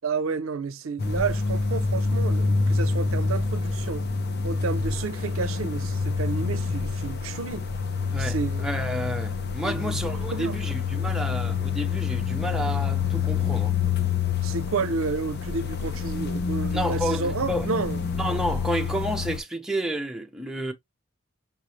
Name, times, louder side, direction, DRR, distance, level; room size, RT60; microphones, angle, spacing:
voice 1, 0.0-4.1 4.4-7.7 8.2-8.7 9.6-10.0 10.3-10.6 14.4-18.0, right 4 dB, 70° right, 0.5 m, -31 dB
sound 1, 1.0-19.4, left 5 dB, 50° left, 0.7 m, -27 dB
voice 2, 8.1-13.8 16.7-17.7 18.2-20.7, right 1 dB, 5° right, 0.7 m, -30 dB
5.6 x 2.7 x 3.0 m
head